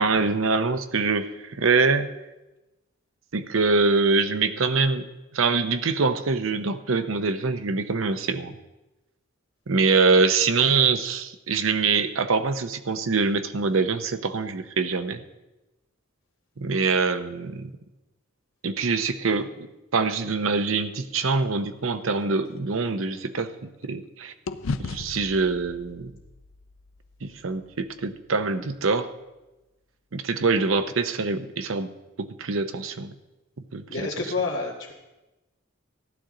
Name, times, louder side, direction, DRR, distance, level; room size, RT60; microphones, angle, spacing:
voice 1, 0.0-2.1 3.3-5.1 5.3-8.6 9.7-15.2 16.6-17.7 18.6-24.3 24.8-26.1 27.2-29.1 30.1-31.9 32.2-33.1 33.7-34.1, right 4 dB, 75° right, 9 dB, 0.7 m, -24 dB
sound 1, 21.8-24.1 24.5-28.7, left 4 dB, 85° left, 0.5 m, -38 dB
voice 2, 33.9-34.9, left 4 dB, 60° left, -8 dB, 1.8 m, -29 dB
15.0 x 11.5 x 3.8 m, 1.0 s
head